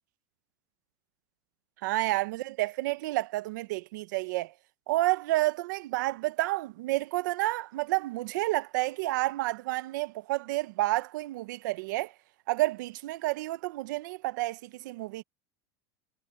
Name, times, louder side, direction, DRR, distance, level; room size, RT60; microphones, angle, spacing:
voice 1, 1.8-4.5 4.9-12.1 12.5-15.2, right 18 dB, 65° right, 0.9 m, -30 dB
supercardioid pair, 175°, 11 cm